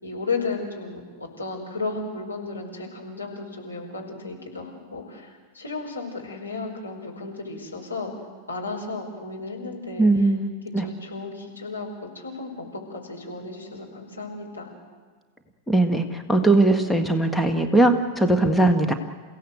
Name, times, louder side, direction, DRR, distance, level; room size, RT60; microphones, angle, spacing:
voice 1, 0.0-8.1 8.5-10.1 10.8-14.7, left 3 dB, 80° left, -1 dB, 5.3 m, -34 dB
voice 2, 10.0-10.9 15.7-18.9, right 2 dB, 5° left, 4 dB, 1.7 m, -20 dB
29.5 x 17.0 x 8.0 m, 1.5 s
figure-of-eight pair, 90°, 0 cm